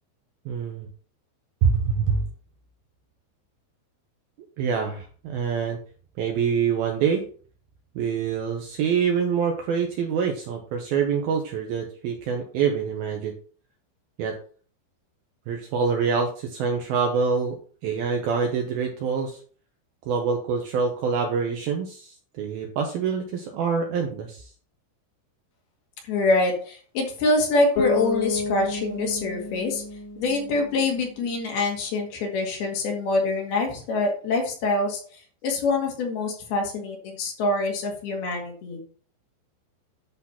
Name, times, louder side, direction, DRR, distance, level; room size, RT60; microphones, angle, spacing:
voice 1, 0.5-0.9 1.6-2.2 4.6-5.8 6.2-7.2 8.0-13.3 14.2-14.3 15.5-17.6 17.8-19.4 20.1-24.5, right 6 dB, 75° right, 3 dB, 2.4 m, -25 dB
voice 2, 26.0-29.8 30.2-38.8, left 2 dB, 60° left, 0 dB, 3.7 m, -25 dB
Bass guitar, 27.8-31.5, left 4 dB, 85° left, 5.9 m, -30 dB
11.0 x 4.1 x 5.7 m, 0.43 s
omnidirectional pair, 5.4 m